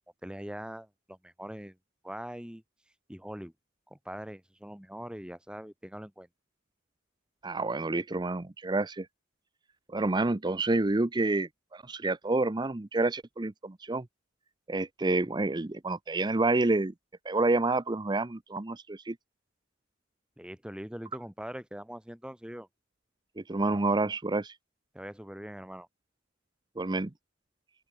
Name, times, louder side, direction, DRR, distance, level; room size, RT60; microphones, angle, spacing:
voice 1, 0.2-1.8 2.0-2.6 3.1-3.5 3.9-6.3 20.4-22.7 24.9-25.9, equal, 5° right, 1.4 m, -42 dB
voice 2, 7.4-9.1 9.9-14.1 14.7-16.9 17.2-19.2 23.4-24.5 26.8-27.1, right 2 dB, 20° right, 0.6 m, -28 dB
open air
head